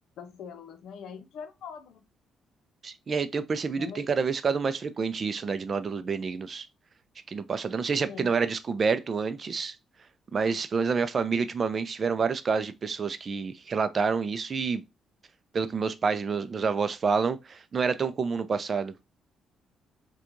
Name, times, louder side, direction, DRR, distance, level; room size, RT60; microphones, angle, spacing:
voice 1, 0.2-2.0 3.7-4.1 8.1-8.3, left 6 dB, 80° left, 0.6 m, -42 dB
voice 2, 2.8-6.7 7.3-9.7 10.3-14.8 15.5-18.9, right 5 dB, 40° right, 0.4 m, -28 dB
4.4 x 2.3 x 2.5 m
cardioid pair, 90°, 0 cm